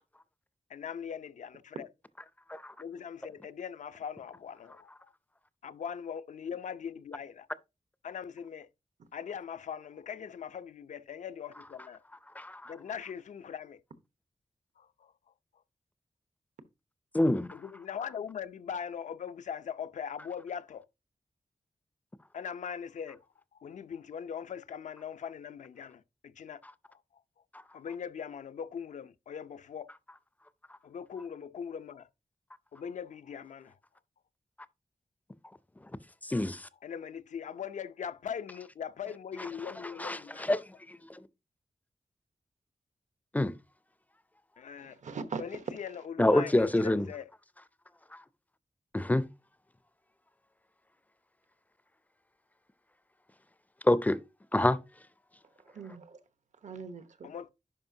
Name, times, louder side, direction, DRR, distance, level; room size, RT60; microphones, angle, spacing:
voice 1, 0.7-1.9 2.8-5.1 5.6-7.5 8.0-8.7 9.1-12.0 12.7-13.8 14.8-15.1 17.5-20.9 22.3-23.2 23.5-26.6 26.9-27.0 27.7-29.9 30.8-32.1 32.7-33.8 36.8-40.6 44.6-45.0 45.4-47.3 57.2-57.5, left 7 dB, 80° left, 0.5 m, -41 dB
voice 2, 12.4-12.7 17.1-17.5 36.2-36.7 40.0-40.6 40.9-41.2 43.3-43.6 46.2-47.1 48.1-48.2 48.9-49.3 53.8-54.2 54.5-54.8, left 1 dB, 10° left, 0.4 m, -27 dB
voice 3, 44.8-45.6 55.6-56.2 56.6-57.3, right 5 dB, 80° right, 1.0 m, -41 dB
10.5 x 5.1 x 2.7 m
wide cardioid pair, 155°, 12 cm